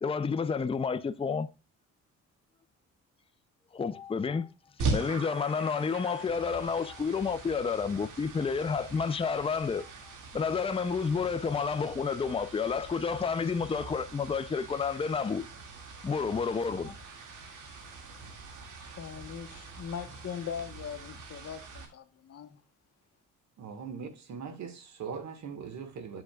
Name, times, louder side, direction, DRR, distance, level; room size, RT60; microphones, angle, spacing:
voice 1, 0.0-1.5 3.7-4.5 4.9-9.9 10.3-15.4 16.0-17.0, left 5 dB, 20° left, 0.5 m, -30 dB
sound 1, 4.8-21.8, right 3 dB, 85° right, 2.3 m, -41 dB
voice 2, 18.8-22.6, left 8 dB, 55° left, 1.2 m, -40 dB
voice 3, 23.6-26.2, right 6 dB, 65° right, 1.7 m, -40 dB
9.4 x 7.6 x 2.4 m
cardioid pair, 90°, 30 cm